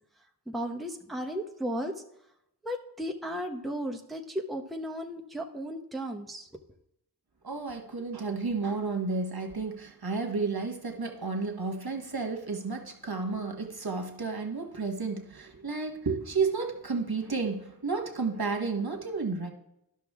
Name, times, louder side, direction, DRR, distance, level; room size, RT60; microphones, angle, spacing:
voice 1, 0.5-1.9 2.6-6.5, equal, ahead, 2 dB, 0.9 m, -35 dB
voice 2, 7.4-19.5, right 4 dB, 60° right, 3 dB, 1.5 m, -32 dB
11.0 x 6.2 x 3.6 m, 0.81 s
wide cardioid pair, 40°, 42 cm